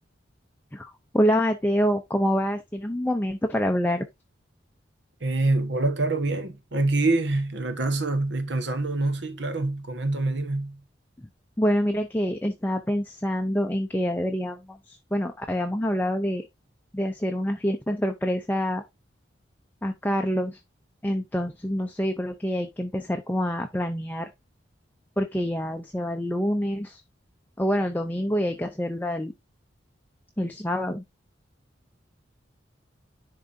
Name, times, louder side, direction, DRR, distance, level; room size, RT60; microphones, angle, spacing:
voice 1, 0.7-4.0 11.6-16.5 16.9-18.8 19.8-20.6 21.0-24.3 25.2-27.0 27.6-29.3 30.4-31.0, equal, 10° left, 0.5 m, -26 dB
voice 2, 5.2-10.8, right 2 dB, 70° right, 1.2 m, -25 dB
10.5 x 3.7 x 2.6 m
head